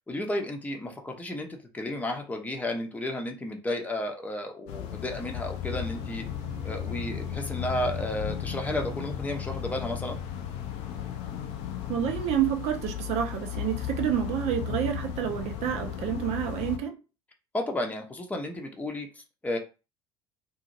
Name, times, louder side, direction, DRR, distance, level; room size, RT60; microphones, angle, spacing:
voice 1, 0.1-6.2 6.6-10.2 17.5-19.6, left 1 dB, 10° left, 0.9 m, -33 dB
sound 1, 4.7-16.8, left 10 dB, 55° left, 0.6 m, -35 dB
sound 2, 5.7-11.0, right 2 dB, 20° right, 0.8 m, -44 dB
voice 2, 11.9-16.9, right 10 dB, 55° right, 0.8 m, -29 dB
2.8 x 2.7 x 2.6 m
hypercardioid pair, 70°, 13 cm